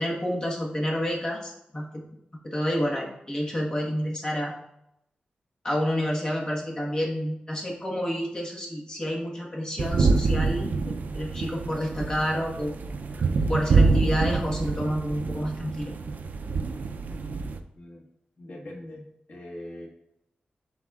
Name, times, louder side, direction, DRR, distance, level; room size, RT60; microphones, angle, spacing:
voice 1, 0.0-1.9 2.4-4.5 5.6-10.9 11.1-12.7 13.2-15.9, equal, 25° left, -2 dB, 1.3 m, -29 dB
sound 1, 9.8-17.6, right 4 dB, 60° right, 0.4 m, -26 dB
voice 2, 18.4-19.9, left 1 dB, 80° left, -3 dB, 1.7 m, -42 dB
11.5 x 4.1 x 2.4 m, 0.81 s
wide cardioid pair, 160°, 3 cm